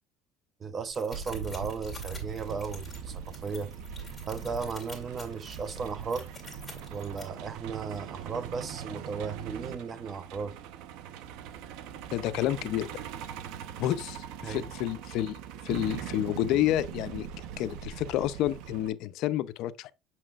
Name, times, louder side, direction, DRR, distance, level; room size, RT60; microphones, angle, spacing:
voice 1, 0.6-3.7 4.3-6.3 6.9-10.6 14.4-14.7, right 5 dB, 30° right, 0.9 m, -35 dB
sound 1, 0.9-7.2, left 3 dB, 10° left, 2.3 m, -49 dB
Truck, 1.1-18.9, right 9 dB, 80° right, 0.6 m, -41 dB
voice 2, 12.1-13.0 13.8-15.4 15.6-17.3 17.6-19.9, left 13 dB, 70° left, 0.5 m, -29 dB
7.4 x 5.9 x 2.4 m
cardioid pair, 115°, 0 cm